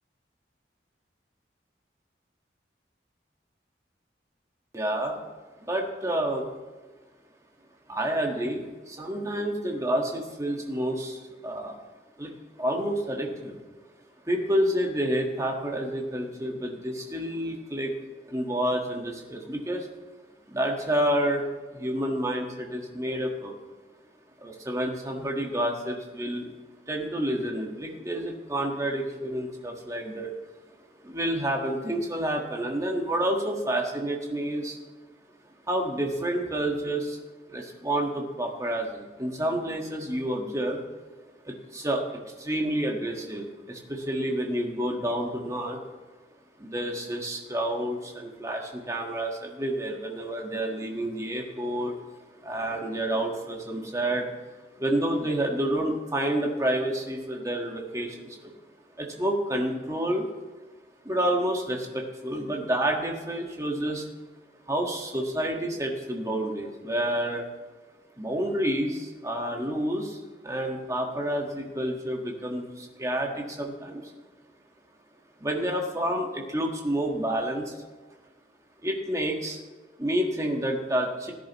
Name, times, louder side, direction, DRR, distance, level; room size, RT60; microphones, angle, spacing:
voice 1, 4.7-5.2 5.7-6.5 7.9-8.6 9.0-11.2 11.4-11.7 12.2-12.3 12.6-13.5 14.3-17.9 18.3-19.8 20.5-21.4 21.8-23.5 24.4-26.4 26.9-30.3 31.0-34.7 35.7-37.2 37.5-40.8 41.7-42.0 42.4-43.8 44.1-45.8 46.6-48.6 48.9-51.9 52.4-54.2 54.8-58.1 58.4-58.5 59.0-60.2 61.0-64.0 64.7-67.4 68.2-70.1 70.4-72.6 73.0-74.0 75.4-77.6 78.8-79.6 80.0-81.3, right 1 dB, 15° right, 1 dB, 1.5 m, -29 dB
16.5 x 10.5 x 3.1 m, 1.3 s
head